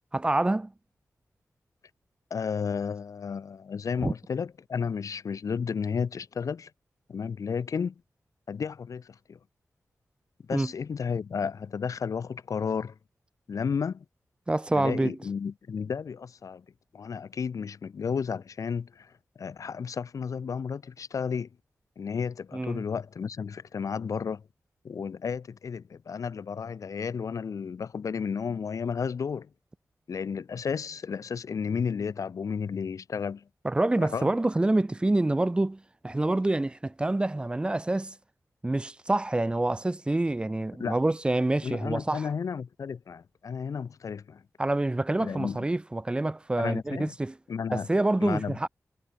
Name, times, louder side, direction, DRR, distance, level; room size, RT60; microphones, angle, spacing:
voice 1, 0.1-0.7 4.0-4.1 10.5-10.7 14.5-15.2 22.5-22.8 33.6-38.1 38.6-42.3 44.6-47.4 47.7-48.7, right 2 dB, 15° right, 4.8 m, -27 dB
voice 2, 2.3-6.7 7.1-7.9 8.5-9.0 9.3-9.4 10.5-12.9 13.5-14.0 14.8-16.6 16.9-18.9 19.4-21.5 22.0-24.4 24.8-29.5 30.1-33.4 34.1-34.3 40.8-40.9 41.6-44.4 45.2-45.6 46.6-47.1 47.5-47.9 48.2-48.5, left 6 dB, 75° left, 5.6 m, -32 dB
wide cardioid pair, 160°, 6 cm